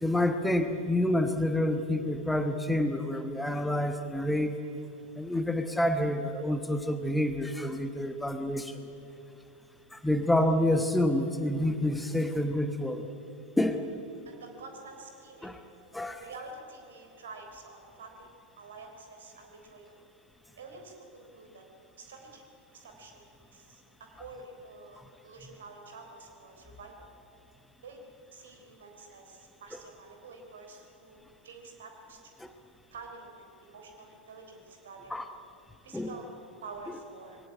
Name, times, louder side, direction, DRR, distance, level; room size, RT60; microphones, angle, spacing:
voice 1, 0.0-4.5 5.2-8.8 9.9-13.0 13.6-13.8 15.4-15.6 15.9-16.2 32.4-32.5 35.1-35.2 35.9-36.2, left 1 dB, 5° left, 8 dB, 1.1 m, -28 dB
voice 2, 14.3-15.6 16.2-20.0 20.6-21.6 22.0-22.4 22.7-27.1 27.8-28.0 28.3-32.5 32.9-35.3 35.8-36.3 36.6-37.4, right 3 dB, 65° right, 4 dB, 3.6 m, -48 dB
21.0 x 17.5 x 8.8 m, 2.8 s
figure-of-eight pair, 90°, 0 cm